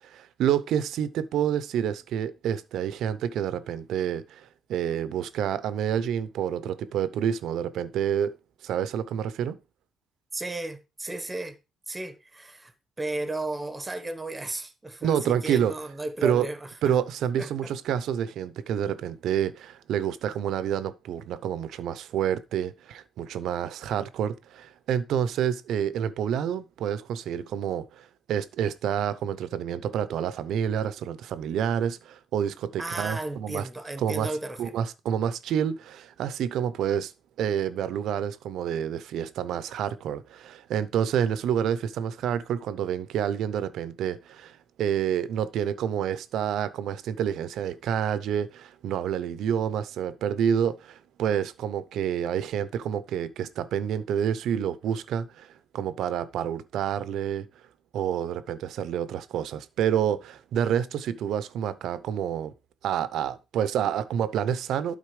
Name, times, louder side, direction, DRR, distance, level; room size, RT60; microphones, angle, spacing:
voice 1, 0.0-8.3 8.6-9.6 15.0-15.7 16.2-16.5 16.8-33.7 34.0-34.3 34.6-37.1 37.4-57.5 57.9-62.5 62.8-65.0, right 9 dB, 75° right, 0.8 m, -28 dB
voice 2, 10.3-11.6 11.9-12.7 13.0-16.9 17.4-17.7 32.8-34.7, right 2 dB, 15° right, 1.2 m, -34 dB
12.0 x 4.1 x 4.9 m
cardioid pair, 140°, 0 cm